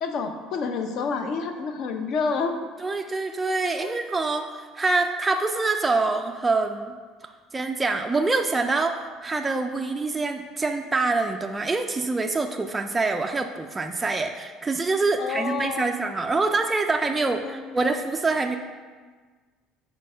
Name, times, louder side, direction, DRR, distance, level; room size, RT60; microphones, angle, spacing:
voice 1, 0.0-2.6 3.8-3.9 15.2-15.9 17.4-17.8, left 5 dB, 50° left, 6 dB, 0.6 m, -28 dB
voice 2, 2.8-6.9 7.5-18.6, right 3 dB, 15° right, 4 dB, 0.3 m, -25 dB
5.2 x 4.4 x 5.6 m, 1.5 s
cardioid pair, 150°, 0 cm